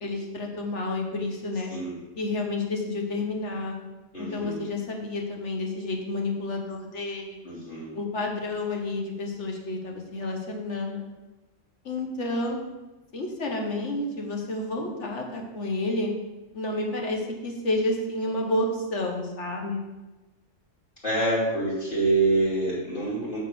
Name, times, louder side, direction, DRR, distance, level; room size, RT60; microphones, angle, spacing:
voice 1, 0.0-1.7 2.2-3.8 4.2-7.4 7.9-11.0 11.8-12.6 13.1-16.1 16.5-19.8, left 2 dB, 65° left, 1 dB, 1.6 m, -30 dB
voice 2, 4.1-4.6 7.4-7.9 21.0-23.4, right 2 dB, 45° left, -6 dB, 2.8 m, -26 dB
6.7 x 4.5 x 5.9 m, 1.1 s
omnidirectional pair, 1.3 m